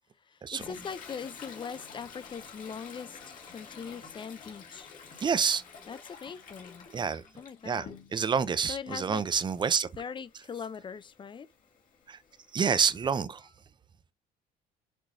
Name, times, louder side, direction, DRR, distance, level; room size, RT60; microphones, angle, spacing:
voice 1, 0.2-4.9 5.9-6.9 7.4-7.9 8.7-9.2 10.0-11.5, left 6 dB, 30° left, 0.5 m, -41 dB
Toilet flush, 0.6-8.4 8.8-13.1, left 5 dB, 50° left, 2.0 m, -50 dB
voice 2, 5.2-5.6 6.9-7.2 7.6-7.9 8.1-9.9 12.1-12.2 12.5-13.4, right 6 dB, 25° right, 0.5 m, -27 dB
6.1 x 3.1 x 2.6 m
cardioid pair, 110°, 17 cm